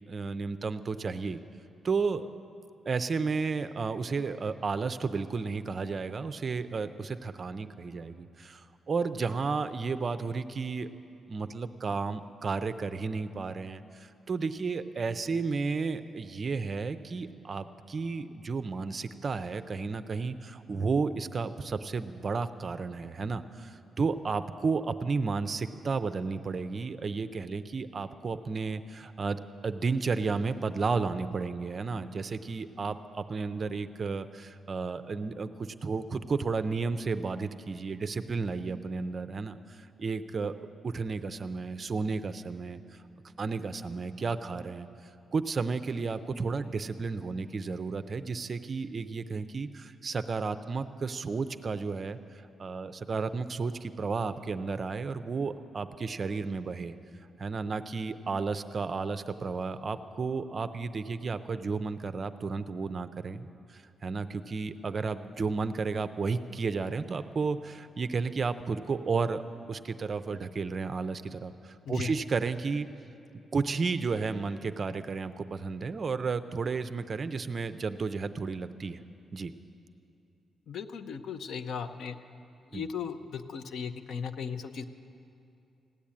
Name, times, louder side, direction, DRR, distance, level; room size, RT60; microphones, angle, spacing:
voice 1, 0.1-1.4 1.8-2.3 2.9-10.9 11.3-40.5 40.8-42.8 43.4-44.9 45.3-57.0 57.4-69.4 69.7-72.9 73.5-79.0 79.3-79.5 82.7-82.8, right 4 dB, 30° right, 11 dB, 0.5 m, -32 dB
voice 2, 80.7-82.2 82.7-84.8, left 6 dB, 60° left, 10 dB, 0.7 m, -37 dB
16.5 x 10.5 x 8.5 m, 2.6 s
wide cardioid pair, 175°, 0 cm